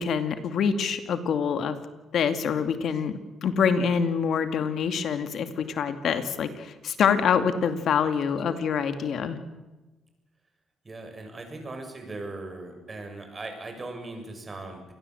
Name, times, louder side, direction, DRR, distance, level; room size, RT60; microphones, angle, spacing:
voice 1, 0.0-1.8 2.1-9.4, left 6 dB, 65° left, 9 dB, 2.4 m, -26 dB
voice 2, 10.8-14.9, right 2 dB, 30° right, 4 dB, 7.4 m, -39 dB
27.5 x 20.0 x 8.1 m, 1.1 s
cardioid pair, 90°, 0 cm